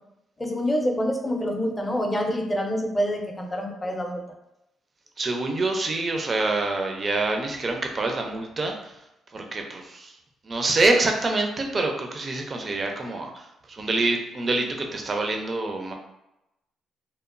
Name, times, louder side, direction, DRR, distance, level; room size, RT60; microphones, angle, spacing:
voice 1, 0.4-4.2, equal, 20° left, 2 dB, 0.5 m, -26 dB
voice 2, 5.2-8.9 9.3-10.1 10.4-15.9, right 2 dB, 35° right, 3 dB, 0.4 m, -26 dB
2.9 x 2.0 x 2.5 m, 0.88 s
cardioid pair, 90°, 0 cm